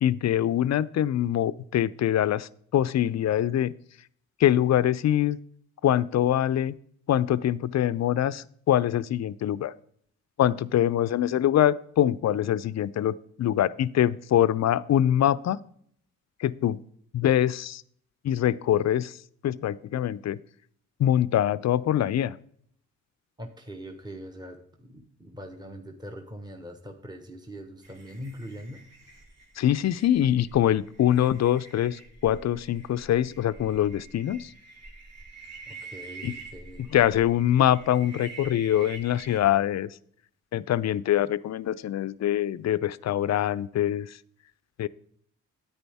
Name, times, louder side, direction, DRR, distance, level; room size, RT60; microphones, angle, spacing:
voice 1, 0.0-3.7 4.4-5.4 5.8-6.8 7.1-9.7 10.4-15.7 16.4-16.8 17.1-17.8 18.2-19.2 19.4-20.4 21.0-22.4 29.6-34.5 36.2-36.3 36.8-40.0 40.5-44.2 44.8-44.9, left 11 dB, 50° left, 18 dB, 0.5 m, -24 dB
voice 2, 23.4-28.9 35.7-36.9, equal, 10° right, 4 dB, 1.2 m, -42 dB
sound 1, 27.8-39.5, right 3 dB, 50° right, 2.5 m, -47 dB
9.8 x 9.0 x 3.5 m, 0.63 s
supercardioid pair, 50°, 34 cm